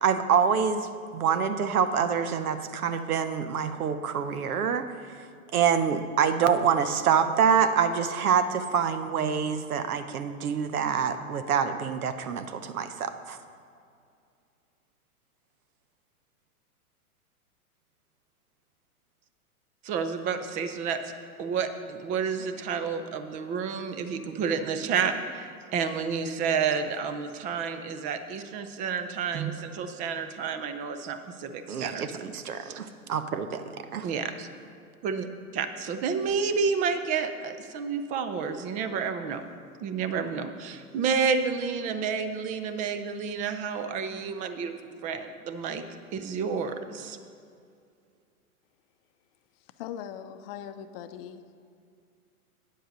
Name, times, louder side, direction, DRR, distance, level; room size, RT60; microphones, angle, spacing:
voice 1, 0.0-4.9 5.5-13.4 31.7-34.1, right 7 dB, 75° right, 10 dB, 0.9 m, -26 dB
voice 2, 19.8-21.0 21.4-32.3 32.6-32.8 34.0-34.3 35.0-35.3 35.5-39.4 39.8-44.7 45.0-45.8 46.1-47.2, right 6 dB, 20° right, 9 dB, 0.4 m, -30 dB
voice 3, 49.8-51.4, left 9 dB, 40° left, 10 dB, 0.7 m, -40 dB
9.4 x 7.8 x 6.3 m, 2.4 s
hypercardioid pair, 115°, 44 cm